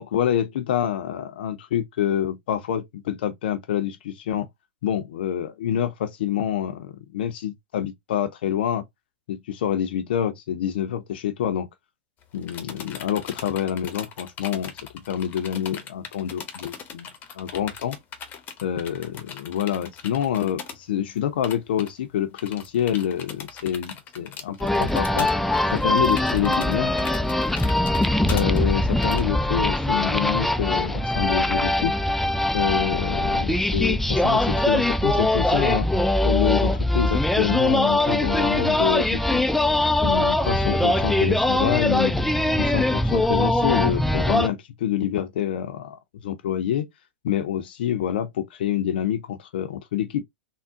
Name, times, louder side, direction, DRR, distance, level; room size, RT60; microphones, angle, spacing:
voice 1, 0.0-4.5 4.8-8.8 9.3-11.7 12.3-14.7 15.1-17.1 17.3-18.0 18.6-25.3 25.7-26.9 28.3-31.9 32.5-35.9 36.2-39.4 40.0-42.2 42.6-46.9 47.2-50.2, left 10 dB, 70° left, 0.5 m, -27 dB
sound 1, 12.2-20.8 21.1-21.2 21.4-21.9 22.4-29.2, left 7 dB, 30° left, 0.7 m, -39 dB
sound 2, 24.6-44.5, left 1 dB, 5° left, 0.3 m, -22 dB
3.6 x 2.1 x 2.5 m
hypercardioid pair, 110°, 6 cm